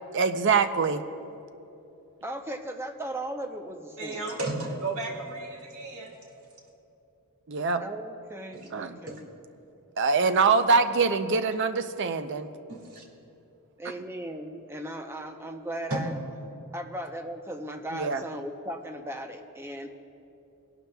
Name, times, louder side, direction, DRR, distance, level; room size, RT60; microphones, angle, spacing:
voice 1, 0.1-1.0 7.5-7.8 8.7-9.0 10.0-12.5 17.9-18.2, right 4 dB, 55° right, 10 dB, 0.5 m, -24 dB
voice 2, 2.2-4.4 7.8-9.3 13.8-16.1 16.7-19.9, right 1 dB, 10° right, 5 dB, 0.7 m, -37 dB
voice 3, 4.0-6.1 8.5-8.6 9.1-9.2 12.7-13.0 15.9-16.0, right 2 dB, 80° right, 0 dB, 2.0 m, -33 dB
22.0 x 11.5 x 2.3 m, 2.9 s
head